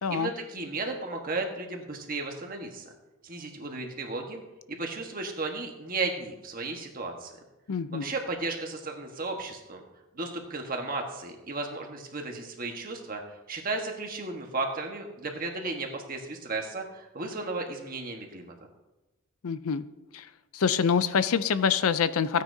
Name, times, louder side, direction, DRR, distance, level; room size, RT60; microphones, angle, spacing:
voice 1, 0.1-2.9 3.2-4.4 4.7-7.3 7.9-9.8 10.1-13.2 13.5-18.5, right 3 dB, 40° right, 2 dB, 1.3 m, -34 dB
voice 2, 7.7-8.0 19.4-19.8 20.1-20.2 20.5-22.4, left 6 dB, 75° left, 14 dB, 0.5 m, -25 dB
15.5 x 9.4 x 2.7 m, 1.0 s
head